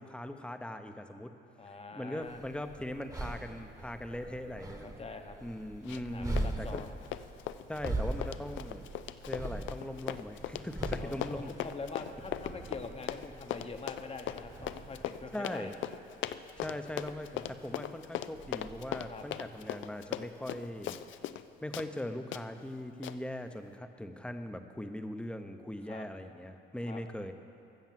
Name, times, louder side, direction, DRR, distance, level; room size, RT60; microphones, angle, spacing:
voice 1, 0.0-1.3 1.9-4.9 5.4-6.8 7.7-8.9 9.3-11.5 15.3-15.7 16.6-21.0 21.6-27.3, left 1 dB, 5° left, 7 dB, 0.7 m, -40 dB
voice 2, 1.6-2.4 4.8-5.4 6.0-6.9 11.0-15.7 19.1-19.3 25.8-26.1 26.8-27.0, left 4 dB, 30° left, 6 dB, 1.0 m, -44 dB
sound 1, 2.2-15.3, right 2 dB, 20° right, 1.2 m, -41 dB
Run, 5.9-6.1 6.4-21.4 21.7-21.9 22.3-22.4 23.0-23.2, left 12 dB, 75° left, 0.4 m, -39 dB
sound 2, 12.0-21.9, right 6 dB, 40° right, 0.7 m, -58 dB
13.5 x 6.6 x 7.5 m, 2.8 s
cardioid pair, 90°, 20 cm